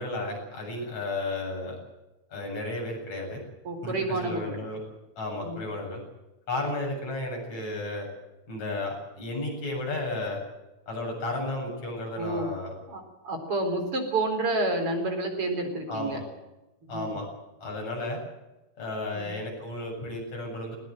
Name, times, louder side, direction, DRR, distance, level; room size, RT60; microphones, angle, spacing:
voice 1, 0.0-1.8 2.3-3.4 3.8-4.8 5.2-6.0 6.5-8.1 8.5-10.4 10.9-12.7 15.9-16.2 16.9-17.3 17.6-18.2 18.8-20.8, left 2 dB, 70° left, 0 dB, 9.3 m, -33 dB
voice 2, 3.6-4.6 5.4-5.6 12.2-12.5 12.9-16.2 16.8-17.2 19.1-19.3, right 2 dB, 50° right, 5 dB, 5.1 m, -29 dB
20.5 x 20.0 x 7.9 m, 1.0 s
omnidirectional pair, 3.3 m